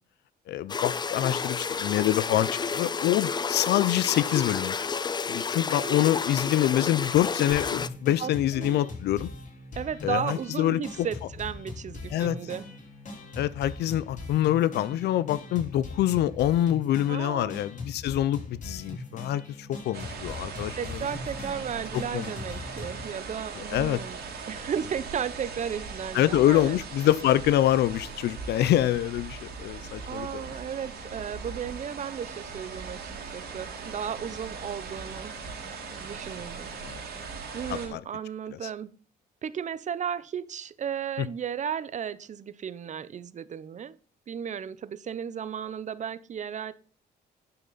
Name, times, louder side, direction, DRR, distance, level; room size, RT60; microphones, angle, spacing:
voice 1, 0.5-4.9 5.3-9.3 10.0-10.8 12.1-12.4 13.4-20.8 22.1-22.3 23.7-24.0 26.1-30.4 36.8-37.0 37.7-38.0, left 13 dB, 80° left, 0.5 m, -25 dB
sound 1, 0.7-7.9, left 5 dB, 25° left, 0.5 m, -31 dB
voice 2, 5.7-6.1 8.2-8.9 9.8-12.7 17.1-17.6 20.8-24.2 24.5-26.8 30.1-35.3 35.9-36.7 37.5-38.9 39.4-44.0 44.3-46.7, right 8 dB, 45° right, 0.7 m, -34 dB
sound 2, 7.5-23.1, left 2 dB, 50° left, 3.2 m, -41 dB
sound 3, 19.9-37.9, right 5 dB, 70° right, 3.2 m, -40 dB
11.0 x 5.9 x 4.0 m
cardioid pair, 95°, 17 cm